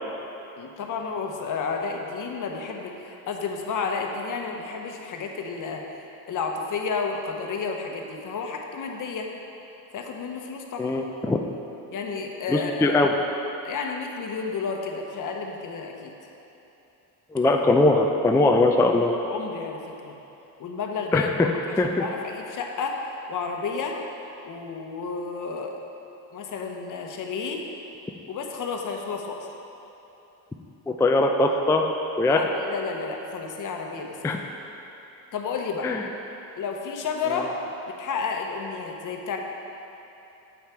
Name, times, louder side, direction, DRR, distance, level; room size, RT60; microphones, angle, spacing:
voice 1, 0.6-9.3 9.9-10.9 11.9-12.9 13.6-16.1 19.2-20.2 20.6-21.5 21.8-23.0 23.3-24.0 24.4-25.7 26.3-27.6 28.3-29.5 32.2-34.2 35.3-35.9 36.6-37.5 38.0-39.4, left 5 dB, 50° left, 2 dB, 1.0 m, -31 dB
voice 2, 10.8-11.4 12.5-13.1 17.3-19.2 21.1-21.5 21.7-22.0 30.9-31.8 32.2-32.4 34.2-34.4 35.8-36.0, left 2 dB, 10° left, 2 dB, 0.4 m, -21 dB
8.4 x 5.7 x 4.5 m, 3.0 s
supercardioid pair, 90°, 40 cm